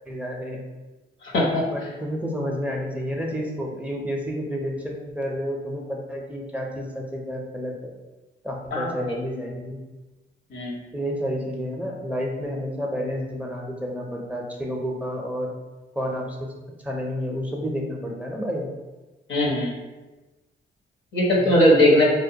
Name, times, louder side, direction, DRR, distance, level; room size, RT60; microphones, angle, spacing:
voice 1, 0.1-0.6 1.7-7.9 8.4-9.8 10.9-15.5 16.0-16.5 16.8-18.7 21.3-22.0, equal, 5° right, -1 dB, 0.5 m, -30 dB
voice 2, 1.3-1.7 8.7-9.1 10.5-10.8 19.3-19.7 21.1-22.0, left 1 dB, 75° left, -3 dB, 0.7 m, -19 dB
2.2 x 2.2 x 2.7 m, 1.1 s
supercardioid pair, 55°, 20 cm